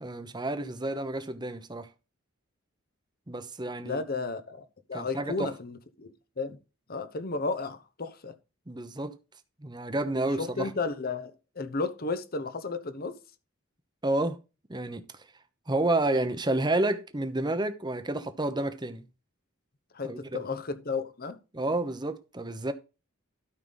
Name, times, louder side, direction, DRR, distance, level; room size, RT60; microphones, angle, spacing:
voice 1, 0.0-1.9 3.3-4.0 4.9-5.5 8.7-9.2 9.6-10.7 14.0-14.4 14.7-15.0 15.7-19.0 20.0-20.4 21.5-22.7, right 2 dB, 20° right, 1.0 m, -30 dB
voice 2, 3.8-6.6 6.9-8.3 10.4-13.2 19.9-21.4, left 3 dB, 45° left, 1.0 m, -33 dB
12.5 x 5.8 x 4.0 m
head